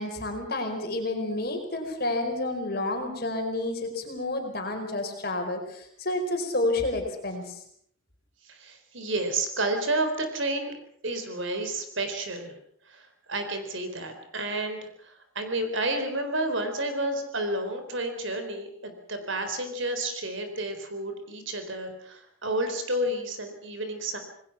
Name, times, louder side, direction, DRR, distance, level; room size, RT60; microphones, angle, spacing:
voice 1, 0.0-7.6, left 2 dB, 45° left, 4 dB, 4.8 m, -30 dB
voice 2, 8.5-10.7 11.0-12.5 12.9-24.2, right 2 dB, 65° right, 7 dB, 4.1 m, -31 dB
27.5 x 20.0 x 6.0 m, 0.66 s
head